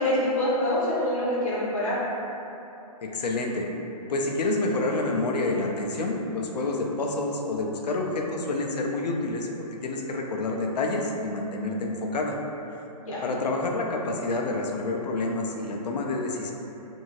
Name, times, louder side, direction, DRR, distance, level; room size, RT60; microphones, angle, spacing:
voice 1, 0.0-2.0 13.0-13.2, left 1 dB, 55° left, -8 dB, 1.1 m, -25 dB
voice 2, 3.0-3.7 4.1-12.3 13.2-16.5, left 2 dB, 90° left, 1 dB, 0.5 m, -28 dB
2.7 x 2.6 x 2.9 m, 3.0 s
hypercardioid pair, 175°, 20 cm